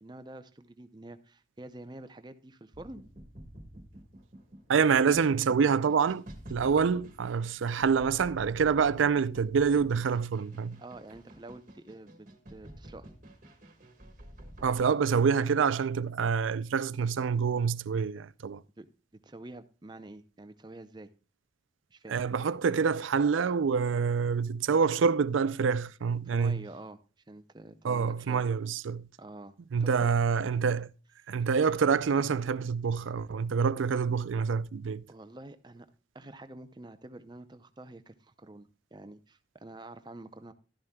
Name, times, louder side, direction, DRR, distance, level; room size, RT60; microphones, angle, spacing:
voice 1, 0.0-3.0 10.8-13.1 18.8-18.9 19.1-21.1 21.9-22.2 26.3-27.0 27.3-28.4 29.2-29.5 29.8-30.1 35.1-35.9 36.1-40.5, right 2 dB, 25° right, 0.6 m, -47 dB
sound 1, 2.7-14.8, right 1 dB, 40° right, 1.5 m, -50 dB
voice 2, 4.7-10.8 14.6-18.6 22.1-26.6 27.8-29.1 29.7-30.9 31.3-35.0, right 6 dB, 90° right, 0.4 m, -26 dB
12.5 x 11.0 x 2.3 m
head